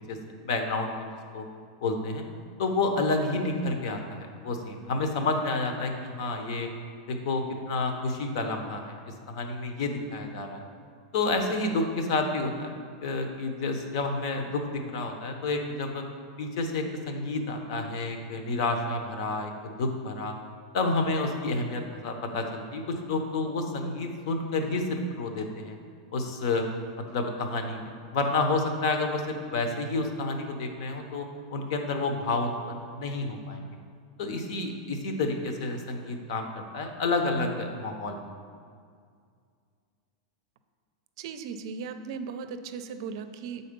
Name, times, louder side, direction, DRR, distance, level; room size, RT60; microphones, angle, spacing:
voice 1, 0.4-1.4 1.8-2.2 2.6-6.7 7.1-9.0 9.3-10.6 11.1-12.7 13.0-16.0 16.4-20.3 20.7-25.8 26.1-26.6 27.1-31.3 31.5-33.6 34.2-38.2, left 3 dB, 55° left, 5 dB, 0.9 m, -30 dB
voice 2, 41.2-43.6, right 5 dB, 55° right, 9 dB, 0.5 m, -37 dB
7.6 x 4.2 x 5.2 m, 2.2 s
supercardioid pair, 160°, 3 cm